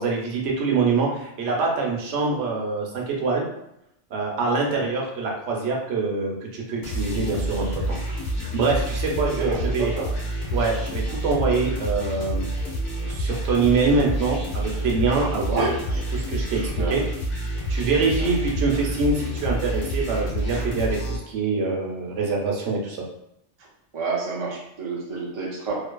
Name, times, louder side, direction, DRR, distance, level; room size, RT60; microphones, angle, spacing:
voice 1, 0.0-3.5 4.1-9.9 10.5-12.4 13.1-15.6 16.3-17.0 17.7-23.0, right 4 dB, 75° right, -1 dB, 1.0 m, -25 dB
sound 1, 6.8-21.2, right 1 dB, 60° left, 1.0 m, -28 dB
voice 2, 9.4-10.1 15.4-16.0 16.6-17.0 18.2-18.3 20.5-20.7 23.6-23.7 23.9-25.9, right 3 dB, 40° right, -3 dB, 0.4 m, -30 dB
2.6 x 2.5 x 2.2 m, 0.79 s
omnidirectional pair, 1.2 m